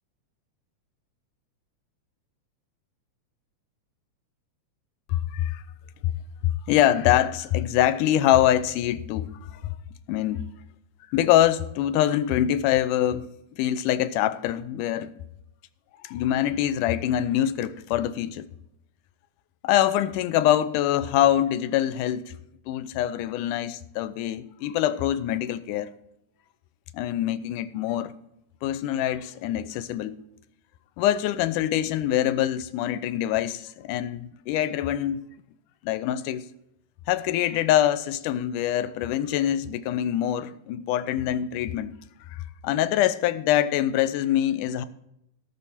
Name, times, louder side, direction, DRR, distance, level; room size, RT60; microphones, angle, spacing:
voice 1, 5.1-5.6 6.0-6.1 6.4-9.8 10.1-10.4 11.1-13.3 13.6-15.1 16.0-18.5 19.6-22.4 22.7-25.9 26.9-28.1 28.6-30.2 31.0-35.2 35.8-36.5 37.1-42.0 42.3-44.9, left 12 dB, 85° left, 2.1 m, -24 dB
18.0 x 6.4 x 4.2 m
omnidirectional pair, 3.6 m